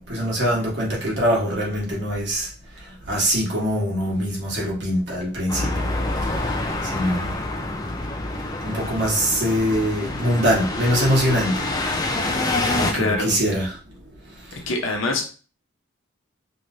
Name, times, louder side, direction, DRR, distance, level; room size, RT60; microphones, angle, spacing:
voice 1, 0.1-2.5 2.8-7.4 8.6-13.8 14.4-14.6, equal, 55° right, -4 dB, 1.2 m, -24 dB
sound 1, 5.5-12.9, left 2 dB, 20° left, 0.3 m, -26 dB
voice 2, 12.9-13.4 14.5-15.2, left 2 dB, 75° left, 1 dB, 0.8 m, -25 dB
3.1 x 2.9 x 2.6 m, 0.37 s
head